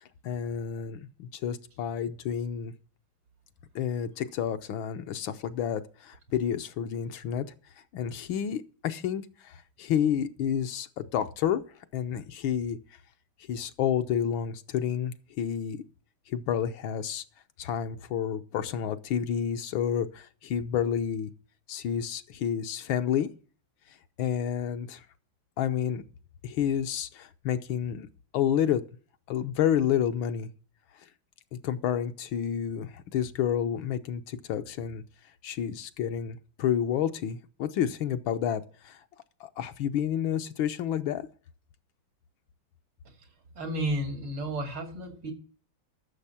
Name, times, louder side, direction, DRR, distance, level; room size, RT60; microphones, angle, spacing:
voice 1, 0.2-2.7 3.7-7.5 7.9-11.6 11.9-12.8 13.5-15.8 16.3-17.2 17.6-21.3 21.7-23.3 24.2-25.0 25.6-26.0 26.4-28.1 28.3-28.8 29.3-30.5 31.6-35.0 35.4-39.0 39.4-41.3, left 9 dB, 75° left, 1.6 m, -30 dB
voice 2, 43.5-45.3, right 1 dB, 85° right, 3.2 m, -32 dB
13.5 x 6.8 x 5.6 m
omnidirectional pair, 2.2 m